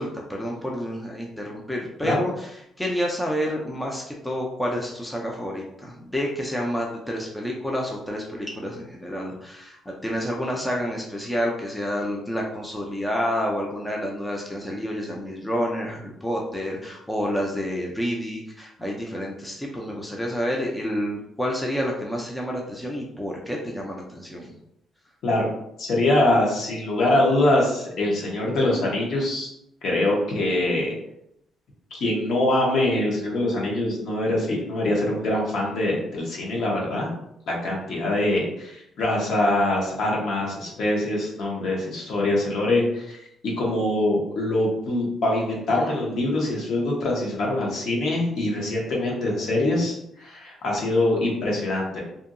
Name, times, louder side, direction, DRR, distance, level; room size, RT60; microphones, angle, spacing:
voice 1, 0.0-24.5, equal, 5° left, -2 dB, 0.4 m, -29 dB
voice 2, 25.8-29.5 29.8-30.9 31.9-37.1 37.5-52.0, left 1 dB, 60° left, -3 dB, 1.0 m, -24 dB
2.7 x 2.7 x 2.5 m, 0.78 s
cardioid pair, 140°, 0 cm